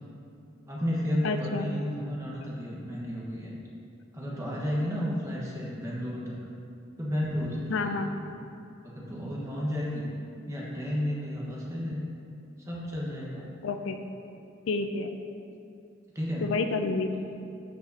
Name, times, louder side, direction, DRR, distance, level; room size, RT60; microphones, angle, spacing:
voice 1, 0.7-3.5 4.1-6.4 7.0-7.9 8.3-8.4 8.8-10.1 10.5-12.0 12.6-13.5 16.1-16.5, equal, 15° right, -5 dB, 1.2 m, -32 dB
voice 2, 1.2-1.7 7.7-8.1 13.6-14.0 14.7-15.1 16.4-17.1, left 3 dB, 65° left, 7 dB, 0.4 m, -29 dB
13.0 x 5.0 x 2.8 m, 2.6 s
head